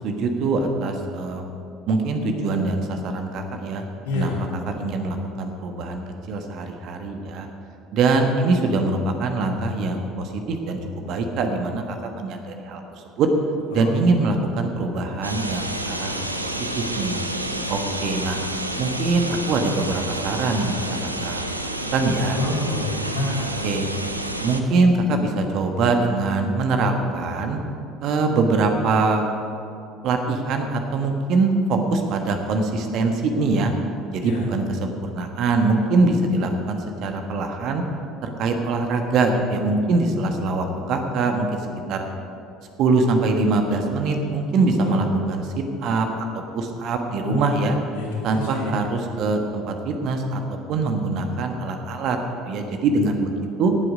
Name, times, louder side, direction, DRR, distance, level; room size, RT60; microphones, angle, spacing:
voice 1, 0.0-1.4 1.9-3.8 4.1-4.3 4.7-7.5 7.9-12.8 13.2-13.3 13.7-17.2 17.7-18.4 18.8-21.4 21.9-22.4 23.6-23.9 24.4-27.6 28.0-29.2 30.0-33.7 34.1-37.8 38.2-41.5 41.9-42.0 42.8-46.2 46.5-47.7 48.2-50.4 50.7-52.2 52.4-53.3 53.6-53.7, right 3 dB, 50° right, 5 dB, 1.4 m, -23 dB
voice 2, 4.0-4.4 13.7-13.9 22.3-23.5 34.2-34.5 44.8-45.0 47.2-47.5 47.9-48.7, left 2 dB, 70° left, -3 dB, 3.1 m, -27 dB
sound 1, 15.2-24.6, right 1 dB, 90° right, 0.6 m, -29 dB
18.0 x 8.1 x 5.2 m, 2.6 s
figure-of-eight pair, 60°, 0 cm